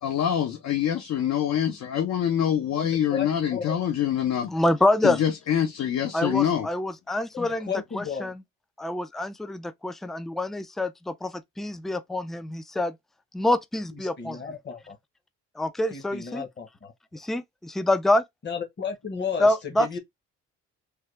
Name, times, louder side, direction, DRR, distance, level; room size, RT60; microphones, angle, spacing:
voice 1, 0.0-4.5 5.0-6.7, left 9 dB, 65° left, 0.7 m, -25 dB
voice 2, 2.8-3.8 7.3-8.3 14.2-15.0 15.9-16.9 18.4-19.5 19.8-20.0, left 6 dB, 35° left, 1.0 m, -33 dB
voice 3, 4.5-5.2 6.1-8.4 8.8-13.0 13.3-14.5 15.6-16.4 17.1-18.2 19.4-20.0, left 1 dB, ahead, 0.3 m, -26 dB
3.4 x 2.2 x 3.1 m
cardioid pair, 90°, 30 cm